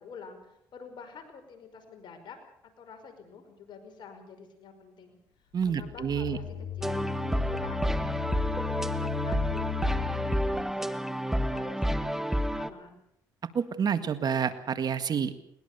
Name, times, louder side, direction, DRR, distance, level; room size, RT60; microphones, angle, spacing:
voice 1, 0.0-2.4 2.8-5.2 5.7-6.4 6.8-13.0, left 6 dB, 65° left, 7 dB, 5.5 m, -48 dB
voice 2, 5.5-6.4 13.5-15.4, right 7 dB, 50° right, 11 dB, 1.8 m, -28 dB
sound 1, 5.6-10.7, left 11 dB, 90° left, 4.3 m, -36 dB
sound 2, 6.8-12.7, equal, 5° right, 1.4 m, -29 dB
21.0 x 20.5 x 6.9 m, 0.72 s
supercardioid pair, 75°, 9 cm